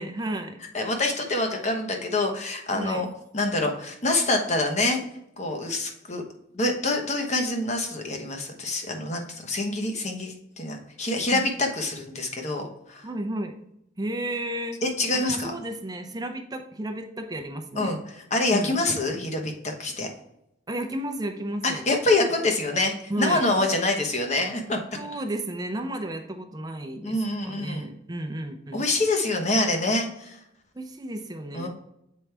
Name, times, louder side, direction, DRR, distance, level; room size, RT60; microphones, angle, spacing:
voice 1, 0.0-0.6 2.7-3.0 11.3-11.4 13.0-13.5 14.0-14.8 15.1-17.9 18.5-18.7 20.7-21.8 23.1-23.4 25.0-27.2 27.4-28.8 30.7-31.7, right 1 dB, 20° right, 6 dB, 0.6 m, -32 dB
voice 2, 0.7-3.1 3.3-5.0 5.4-6.2 6.5-12.6 12.9-13.1 14.8-15.5 17.7-20.1 21.6-24.8 27.0-27.9 28.7-30.4 31.5-31.7, left 2 dB, 40° left, 3 dB, 1.1 m, -26 dB
7.3 x 4.6 x 3.4 m, 0.79 s
head